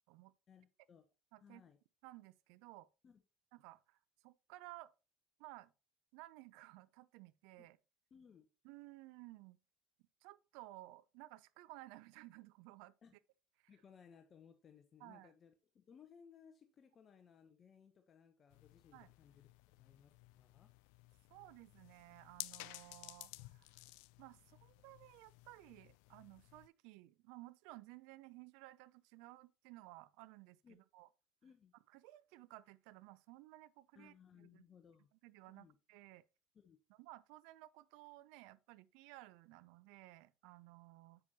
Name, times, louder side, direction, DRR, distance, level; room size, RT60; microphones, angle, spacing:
voice 1, 0.5-1.0 1.4-1.8 3.0-3.2 7.6-7.7 8.1-8.5 13.0-13.2 13.7-19.5 19.8-20.7 30.6-30.8 31.4-31.7 33.9-35.1 35.5-35.8 36.5-36.8, left 7 dB, 40° left, 0.8 m, -63 dB
voice 2, 2.0-2.9 3.5-4.0 4.2-4.9 5.4-5.7 6.1-7.8 8.6-9.6 10.2-12.9 15.0-15.3 18.9-19.1 21.3-23.8 24.2-31.1 31.9-34.6 35.2-36.2 36.9-41.2, right 18 dB, 75° right, 0.5 m, -57 dB
sound 1, 18.5-26.7, left 22 dB, 75° left, 0.3 m, -55 dB
7.8 x 6.0 x 2.8 m
supercardioid pair, 85°, 0 cm